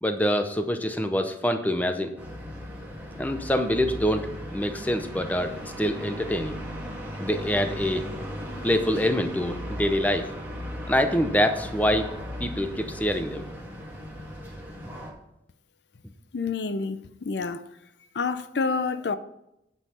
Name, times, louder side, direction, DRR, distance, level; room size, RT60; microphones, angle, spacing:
voice 1, 0.0-2.1 3.2-6.6 7.2-8.0 8.6-10.3 10.9-12.1 12.4-13.4, equal, 10° left, 0.6 m, -25 dB
sound 1, 2.2-15.1, equal, 10° right, 1.6 m, -37 dB
voice 2, 16.3-17.6 18.1-19.2, left 4 dB, 80° left, 0.6 m, -28 dB
9.0 x 5.6 x 5.6 m
head